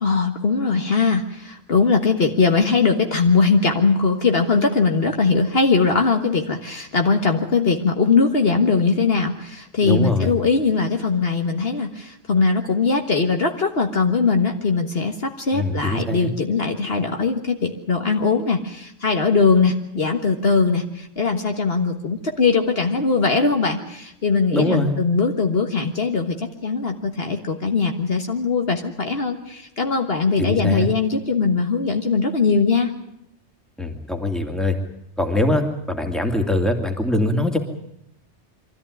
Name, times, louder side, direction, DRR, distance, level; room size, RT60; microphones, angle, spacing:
voice 1, 0.0-32.9, left 4 dB, 55° left, 4 dB, 1.7 m, -20 dB
voice 2, 9.8-10.3 15.5-16.3 24.5-24.9 30.4-30.9 33.8-34.8 35.2-37.6, left 1 dB, ahead, 4 dB, 2.4 m, -22 dB
24.0 x 14.0 x 9.8 m, 0.79 s
omnidirectional pair, 1.2 m